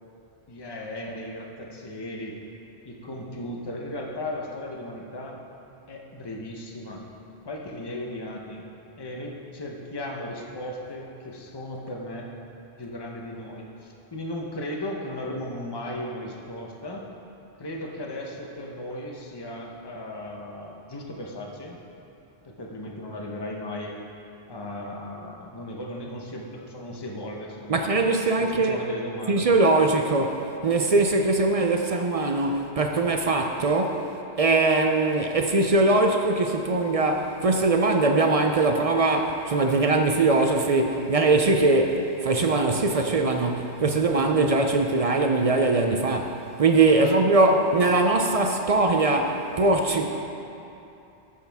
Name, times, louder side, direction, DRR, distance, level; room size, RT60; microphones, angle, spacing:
voice 1, 0.5-2.4 2.8-5.4 5.9-7.0 7.4-8.6 9.0-12.3 12.8-17.0 17.6-21.8 22.4-24.0 24.5-27.8 28.4-29.5 46.9-47.2, left 1 dB, 25° left, -1 dB, 0.9 m, -36 dB
voice 2, 27.7-28.8 29.3-34.1 34.4-50.1, right 3 dB, 50° right, 4 dB, 0.5 m, -21 dB
13.5 x 6.5 x 3.5 m, 2.8 s
omnidirectional pair, 1.1 m